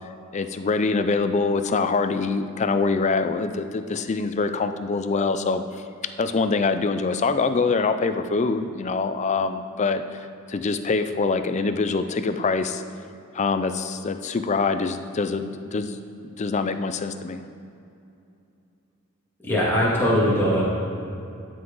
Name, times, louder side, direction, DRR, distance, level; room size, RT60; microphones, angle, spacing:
voice 1, 0.3-5.8 6.2-12.8 13.3-16.0 16.2-17.4, left 4 dB, 35° left, 9 dB, 0.4 m, -24 dB
voice 2, 19.4-20.7, equal, 10° left, -7 dB, 2.2 m, -21 dB
12.5 x 5.9 x 4.0 m, 2.6 s
head